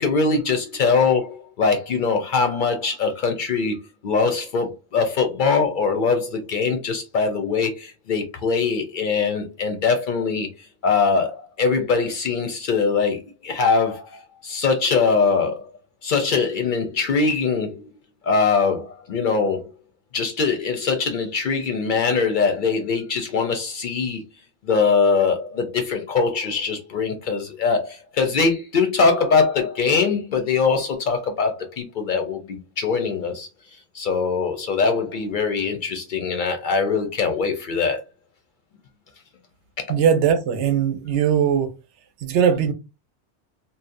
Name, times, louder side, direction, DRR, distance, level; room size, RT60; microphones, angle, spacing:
voice 1, 0.0-3.8 4.0-10.5 10.8-15.7 16.0-17.9 18.2-19.7 20.1-24.2 24.6-33.5 33.9-38.0, left 5 dB, 60° left, 0.6 m, -22 dB
voice 2, 39.9-41.7 42.2-42.7, right 8 dB, 90° right, 0.9 m, -20 dB
2.7 x 2.0 x 2.5 m
omnidirectional pair, 1.1 m